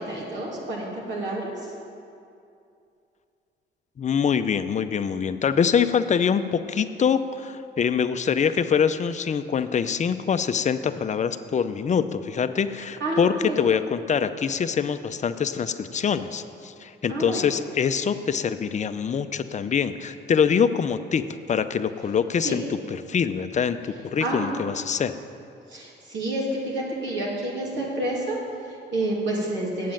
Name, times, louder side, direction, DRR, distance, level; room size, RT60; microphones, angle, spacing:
voice 1, 0.0-1.7 13.0-13.6 17.1-17.4 22.4-22.6 24.2-24.5 25.7-29.9, right 1 dB, 65° right, -4 dB, 2.8 m, -29 dB
voice 2, 4.0-25.1, left 7 dB, 35° left, 11 dB, 0.5 m, -24 dB
8.4 x 7.5 x 8.9 m, 2.5 s
cardioid pair, 90°, 20 cm